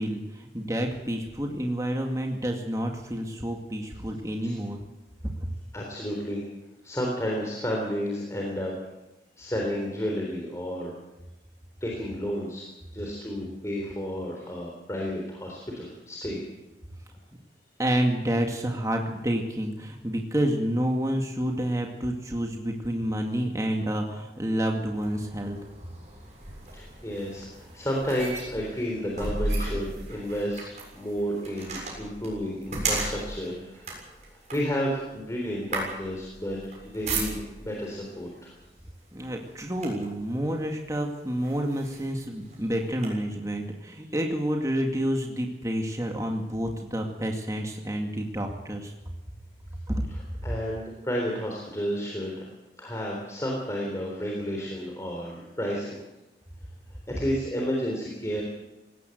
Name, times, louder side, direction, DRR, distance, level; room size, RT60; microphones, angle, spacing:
voice 1, 0.0-4.8 5.2-5.5 17.8-25.6 39.1-48.9 49.9-50.0, equal, 20° right, 2 dB, 2.2 m, -29 dB
voice 2, 5.7-6.4 6.8-8.7 9.4-10.9 11.8-12.6 12.9-16.4 26.7-30.6 30.9-38.6 50.1-52.5 52.8-56.0 57.1-58.4, equal, 15° left, -1 dB, 3.7 m, -31 dB
sound 1, 24.9-37.8 38.6-38.8 39.2-40.2 40.9-41.0 41.4-43.1, right 2 dB, 40° right, 7.1 m, -35 dB
20.0 x 17.5 x 7.9 m, 1.0 s
head